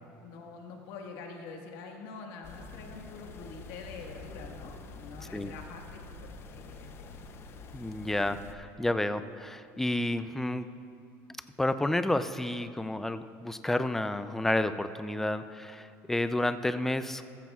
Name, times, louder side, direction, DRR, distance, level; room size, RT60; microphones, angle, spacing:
voice 1, 0.2-6.9, left 4 dB, 75° left, 2 dB, 1.6 m, -45 dB
sound 1, 2.4-8.5, left 3 dB, 40° left, 0.7 m, -46 dB
voice 2, 7.7-10.7 11.6-17.2, left 1 dB, 5° left, 11 dB, 0.4 m, -30 dB
14.5 x 14.5 x 2.4 m, 2.4 s
cardioid pair, 135°, 7 cm